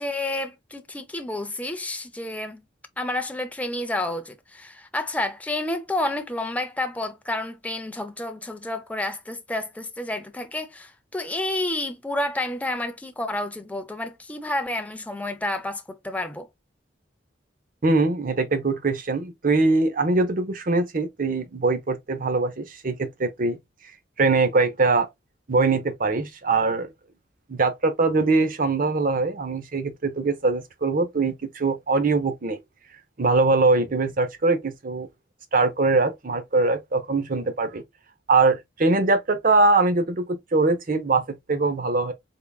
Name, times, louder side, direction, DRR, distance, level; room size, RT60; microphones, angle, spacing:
voice 1, 0.0-2.6 3.0-16.5, left 1 dB, 10° left, 0.5 m, -30 dB
voice 2, 17.8-23.6 24.2-25.1 25.5-26.9 27.5-32.6 33.2-35.1 35.5-37.8 38.3-42.1, right 3 dB, 50° right, 0.7 m, -22 dB
3.7 x 3.5 x 2.3 m
head